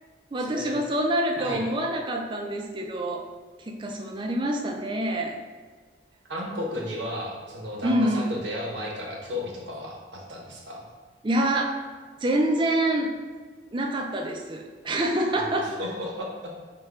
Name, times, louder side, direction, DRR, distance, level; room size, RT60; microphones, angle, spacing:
voice 1, 0.3-3.2 3.6-5.4 7.8-8.3 11.2-11.8 12.2-13.1 13.7-15.8, right 1 dB, 25° right, 2 dB, 0.4 m, -26 dB
voice 2, 6.3-10.8 15.3-16.5, left 1 dB, 80° right, -1 dB, 0.9 m, -34 dB
5.5 x 2.3 x 3.5 m, 1.5 s
head